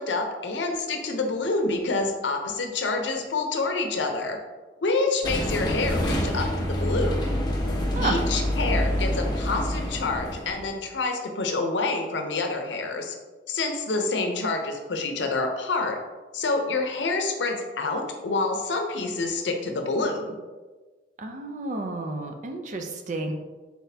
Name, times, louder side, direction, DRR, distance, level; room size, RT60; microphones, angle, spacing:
voice 1, 0.0-4.4 4.8-7.3 8.0-13.1 13.5-16.0 16.3-20.4, left 3 dB, 85° left, 4 dB, 0.6 m, -27 dB
sound 1, 5.2-10.7, equal, 25° left, 0.7 m, -26 dB
voice 2, 21.2-23.3, right 3 dB, 45° right, 5 dB, 0.4 m, -31 dB
4.2 x 4.0 x 2.7 m, 1.3 s
head